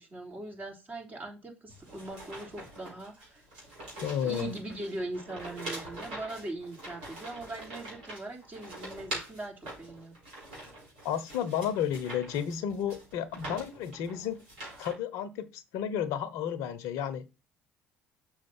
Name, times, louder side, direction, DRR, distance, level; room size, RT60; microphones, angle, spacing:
voice 1, 0.0-3.4 4.2-10.2, right 2 dB, 30° right, 3.4 m, -40 dB
sound 1, 1.7-14.9, right 1 dB, 75° right, 4.4 m, -44 dB
voice 2, 4.0-4.5 11.0-14.4 14.8-17.4, left 9 dB, 65° left, 1.0 m, -32 dB
6.5 x 5.2 x 5.5 m
hypercardioid pair, 55°, 6 cm